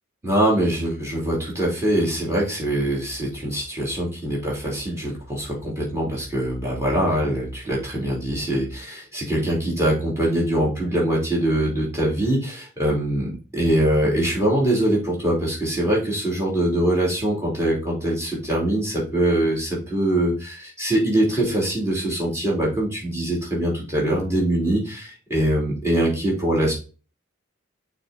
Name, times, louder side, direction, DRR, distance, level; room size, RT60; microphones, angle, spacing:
voice 1, 0.2-26.7, right 1 dB, 15° right, -3 dB, 3.1 m, -23 dB
6.5 x 4.2 x 4.0 m, 0.35 s
head